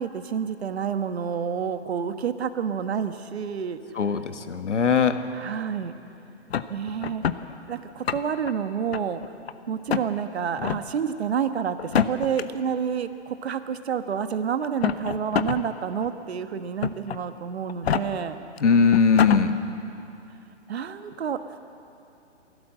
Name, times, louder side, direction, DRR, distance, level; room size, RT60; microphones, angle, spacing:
voice 1, 0.0-3.8 5.3-5.9 6.7-7.2 7.7-9.2 9.7-18.4 20.7-21.4, right 7 dB, 65° right, 9 dB, 1.4 m, -29 dB
voice 2, 3.9-5.2 18.6-19.6, left 5 dB, 85° left, 8 dB, 1.6 m, -20 dB
sound 1, 6.5-7.4 7.9-8.5 8.9-9.5 9.9-10.1 10.6-10.8 11.8-12.4 13.5-13.6 14.6-15.6 16.0-16.1 16.8-17.2 17.7-18.0 18.6-18.7 18.9-19.4, left 8 dB, 60° left, 1.0 m, -25 dB
23.0 x 16.5 x 7.6 m, 2.7 s
hypercardioid pair, 155°, 35 cm